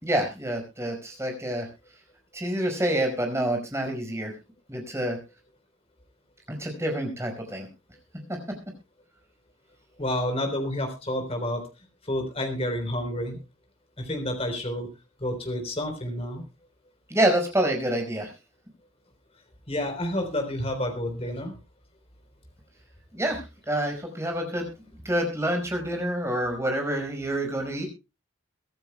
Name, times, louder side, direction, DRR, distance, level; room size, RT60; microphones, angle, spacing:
voice 1, 0.0-1.7 2.3-4.3 4.7-5.2 6.6-7.7 17.1-18.3 23.1-23.4 23.7-24.7 25.0-27.9, right 1 dB, 15° right, 3 dB, 5.1 m, -27 dB
voice 2, 10.0-11.6 12.0-13.4 14.0-14.9 15.2-16.4 19.7-21.5, left 1 dB, 30° left, 5 dB, 3.8 m, -29 dB
23.5 x 12.5 x 2.2 m, 0.29 s
head